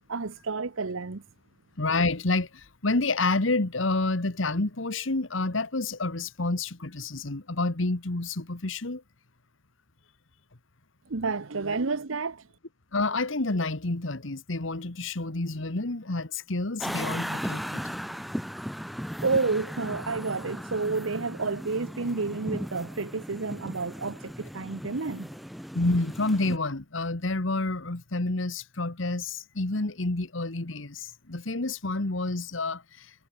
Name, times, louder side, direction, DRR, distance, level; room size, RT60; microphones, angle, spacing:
voice 1, 0.1-1.2 11.1-12.4 19.2-25.3, right 4 dB, 80° right, 1.0 m, -30 dB
voice 2, 1.8-9.0 12.9-18.0 25.7-33.1, left 2 dB, 70° left, 1.6 m, -29 dB
sound 1, 16.8-26.6, equal, ahead, 2.7 m, -37 dB
head